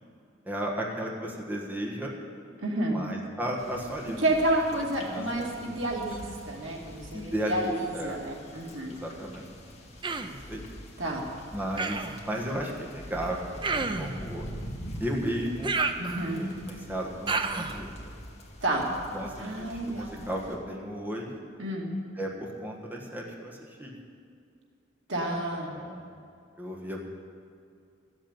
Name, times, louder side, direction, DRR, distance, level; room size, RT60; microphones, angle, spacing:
voice 1, 0.4-2.1 2.8-4.2 5.0-5.5 7.1-8.1 9.0-9.5 10.2-10.6 11.5-14.4 15.0-15.7 16.4-17.9 19.1-21.4 22.2-24.0 25.7-26.0 26.6-27.0, equal, 10° right, -2 dB, 1.5 m, -34 dB
voice 2, 2.6-3.0 4.2-8.9 11.0-11.2 16.0-16.4 18.6-18.9 19.4-20.4 21.6-21.9 25.1-25.7, right 1 dB, 90° right, -1 dB, 2.5 m, -30 dB
sound 1, 3.6-20.6, equal, 35° left, 2.0 m, -45 dB
Human voice, 10.0-10.4 11.8-12.2 13.6-14.2 15.6-16.5 17.3-17.8, right 4 dB, 25° right, 0.6 m, -30 dB
14.0 x 7.9 x 8.9 m, 2.4 s
head